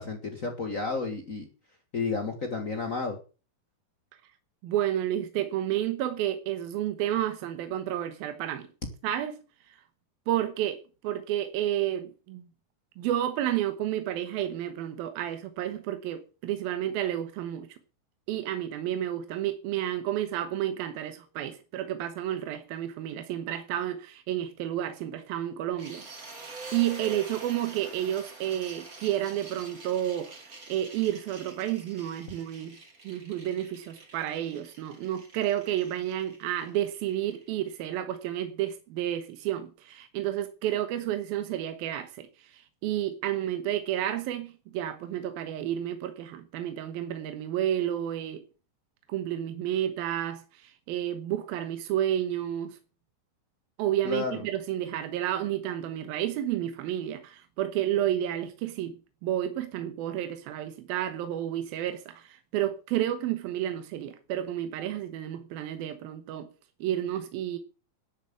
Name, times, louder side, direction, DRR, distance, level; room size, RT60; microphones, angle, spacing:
voice 1, 0.0-1.5 1.9-3.2 54.0-54.4, left 4 dB, 80° left, 0.7 m, -31 dB
voice 2, 4.6-8.7 9.0-9.4 9.7-9.8 10.3-10.8 11.0-12.5 13.0-17.7 18.3-26.0 26.3-32.8 33.0-48.4 49.1-52.8 53.8-59.0 59.2-66.5 66.8-67.6, right 12 dB, 80° right, 3.0 m, -31 dB
sound 1, 25.8-37.7, right 2 dB, 25° right, 2.7 m, -47 dB
12.0 x 7.3 x 8.5 m
omnidirectional pair, 4.2 m